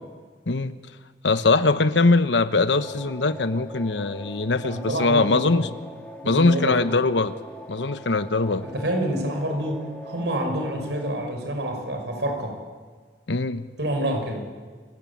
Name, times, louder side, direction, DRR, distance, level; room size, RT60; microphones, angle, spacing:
voice 1, 1.2-5.7 6.2-7.3 7.7-8.6 13.3-13.7, left 3 dB, 90° left, 11 dB, 1.0 m, -21 dB
sound 1, 2.7-11.1, equal, 10° left, 2.9 m, -42 dB
voice 2, 4.6-5.7 6.2-6.7 8.6-12.6 13.8-14.5, right 1 dB, 75° right, 4 dB, 5.8 m, -27 dB
29.0 x 15.5 x 8.7 m, 1.5 s
head